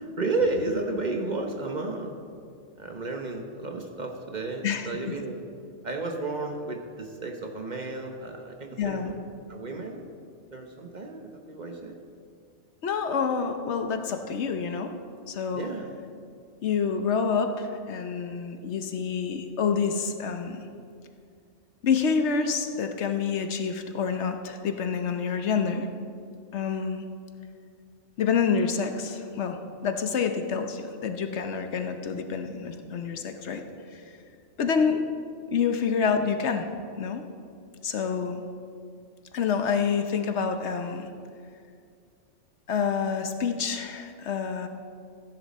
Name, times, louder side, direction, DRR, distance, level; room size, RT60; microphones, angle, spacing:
voice 1, 0.0-2.2 2.8-5.4 5.8-9.2 9.5-10.2 10.5-12.0 15.5-15.9, right 3 dB, 40° right, 3 dB, 1.1 m, -32 dB
voice 2, 8.8-9.1 12.8-14.9 15.3-15.6 16.6-20.6 21.8-25.9 26.5-27.0 28.2-33.6 33.9-34.0 34.6-35.1 35.5-36.7 37.0-37.2 37.8-38.4 39.3-41.1 42.7-44.7, left 6 dB, 70° left, 6 dB, 1.1 m, -27 dB
15.0 x 10.5 x 4.2 m, 2.3 s
omnidirectional pair, 1.2 m